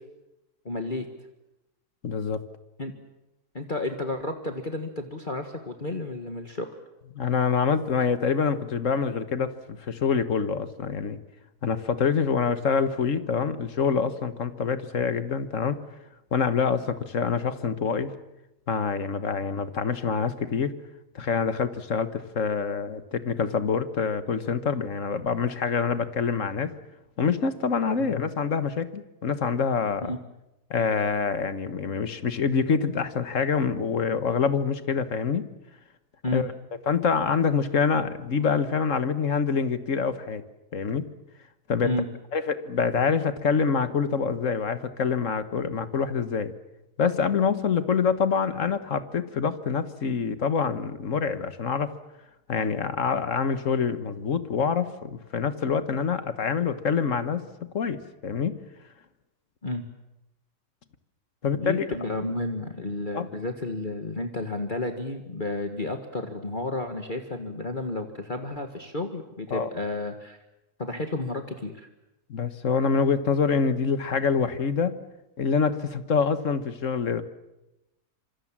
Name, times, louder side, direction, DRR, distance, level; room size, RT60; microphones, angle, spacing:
voice 1, 0.6-1.1 2.8-2.9 3.5-6.8 28.0-28.1 30.0-30.2 36.2-36.4 41.8-42.1 59.6-59.8 61.4-70.4 70.8-71.9, left 2 dB, 30° left, 5 dB, 1.7 m, -32 dB
voice 2, 2.0-2.4 7.1-11.2 11.6-15.8 16.3-18.1 18.7-20.7 21.1-26.7 27.2-30.1 30.7-35.5 36.3-36.5 36.9-40.4 40.7-41.0 41.7-41.9 42.3-46.5 47.0-51.9 52.5-57.4 57.7-58.6 61.4-61.9 63.1-63.2 69.5-69.7 72.3-75.0 75.4-77.2, left 6 dB, 55° left, 12 dB, 1.6 m, -26 dB
26.5 x 25.5 x 7.4 m, 0.95 s
omnidirectional pair, 1.7 m